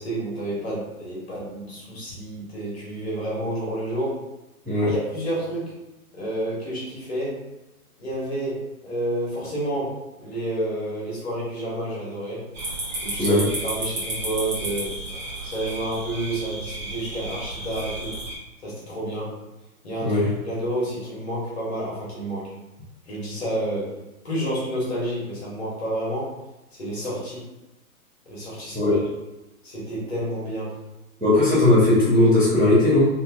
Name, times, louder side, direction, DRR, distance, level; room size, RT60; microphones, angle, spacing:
voice 1, 0.0-4.1 4.8-5.7 6.1-7.4 8.0-12.4 13.0-15.0 15.4-18.2 18.6-19.3 19.8-22.5 23.1-23.9 24.2-26.3 26.7-27.4 28.3-29.0 29.6-30.8, right 1 dB, 45° left, -5 dB, 1.4 m, -29 dB
sound 1, 12.5-18.4, right 2 dB, 30° right, 1.0 m, -32 dB
voice 2, 31.2-33.1, left 1 dB, ahead, -21 dB, 1.2 m, -18 dB
4.3 x 2.8 x 2.4 m, 1.0 s
hypercardioid pair, 175°, 44 cm